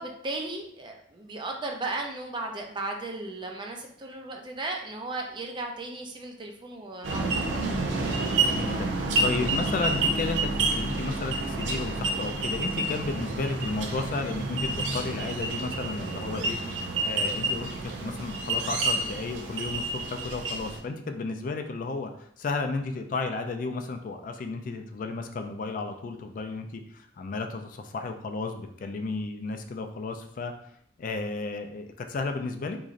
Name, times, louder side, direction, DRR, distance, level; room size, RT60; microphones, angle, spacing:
voice 1, 0.0-7.6, right 2 dB, 25° right, 2 dB, 0.4 m, -35 dB
sound 1, 7.0-20.8, right 2 dB, 90° right, 0.5 m, -29 dB
voice 2, 8.2-16.6 17.0-17.7 18.0-30.5 31.0-32.8, left 3 dB, 50° left, 6 dB, 0.3 m, -33 dB
3.7 x 3.0 x 2.5 m, 0.69 s
head